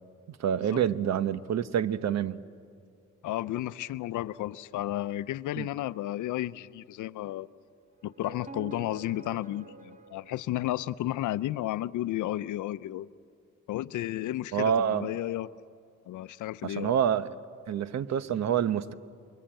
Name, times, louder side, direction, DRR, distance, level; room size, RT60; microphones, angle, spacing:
voice 1, 0.3-2.4 5.6-5.7 14.5-15.1 16.6-17.3 17.7-18.9, right 8 dB, 60° right, 14 dB, 1.0 m, -27 dB
voice 2, 3.2-7.5 8.0-13.1 13.7-15.5 16.1-16.9, left 14 dB, 80° left, 16 dB, 0.7 m, -33 dB
sound 1, 8.0-11.2, right 3 dB, 25° right, 2.0 m, -48 dB
28.0 x 23.0 x 8.9 m, 2.2 s
cardioid pair, 90°, 30 cm